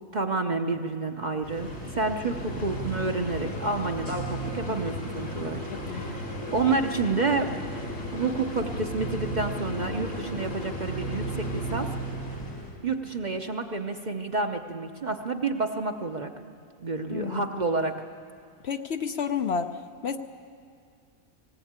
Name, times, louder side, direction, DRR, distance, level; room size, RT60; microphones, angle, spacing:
voice 1, 0.1-7.6 8.1-11.9 12.8-16.3 16.8-18.0, right 3 dB, 40° right, 5 dB, 0.8 m, -29 dB
sound 1, 1.4-12.8, equal, 75° left, 3.6 m, -34 dB
voice 2, 5.7-6.2 17.1-17.5 18.6-19.7 20.0-20.2, left 6 dB, 60° left, 7 dB, 0.9 m, -30 dB
18.5 x 18.0 x 8.8 m, 2.2 s
omnidirectional pair, 1.4 m